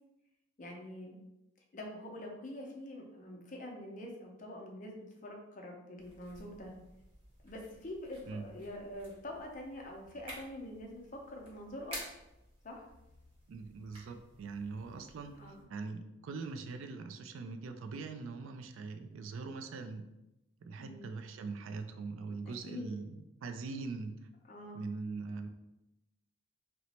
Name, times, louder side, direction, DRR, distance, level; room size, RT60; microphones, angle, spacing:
voice 1, 0.6-1.2 1.7-6.7 7.4-11.0 11.3-12.1 12.6-12.9 15.4-15.6 20.8-21.0 22.4-22.9 24.5-24.8, left 1 dB, 35° left, 0 dB, 0.5 m, -45 dB
sound 1, 6.0-15.6, right 1 dB, 25° right, 1.0 m, -53 dB
voice 2, 13.5-20.0 20.6-24.2 24.7-25.5, right 4 dB, 75° right, 7 dB, 0.3 m, -42 dB
3.0 x 2.0 x 4.1 m, 0.93 s
head